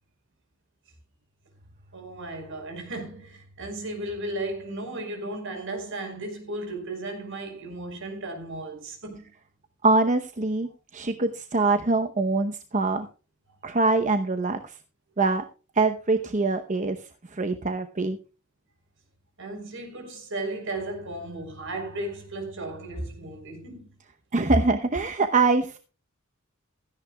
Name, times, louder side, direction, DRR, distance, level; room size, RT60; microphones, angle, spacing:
voice 1, 1.9-9.3 19.4-23.9, right 2 dB, 60° right, 4.8 m, -35 dB
voice 2, 9.8-13.1 13.6-14.7 15.2-15.4 15.8-17.0 17.3-18.2 24.3-25.8, right 3 dB, 35° right, 0.9 m, -24 dB
16.0 x 14.0 x 2.3 m
head